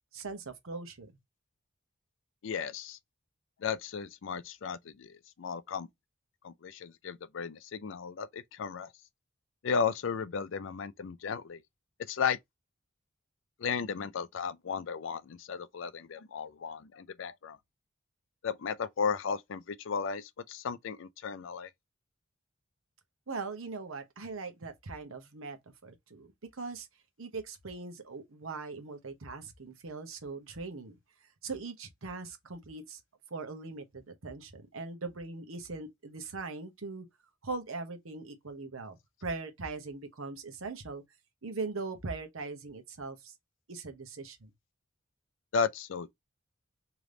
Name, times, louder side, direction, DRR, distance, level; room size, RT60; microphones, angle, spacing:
voice 1, 0.1-1.1 23.3-26.9 27.2-31.0 31.4-33.0 33.3-37.1 37.4-41.0 41.4-43.3 43.7-44.5, right 3 dB, 85° right, 1.0 m, -40 dB
voice 2, 2.4-3.0 3.6-5.9 6.4-8.9 9.6-11.6 12.1-12.4 13.6-17.6 18.4-21.7 45.5-46.1, left 6 dB, 65° left, 0.4 m, -34 dB
3.4 x 3.0 x 3.7 m
head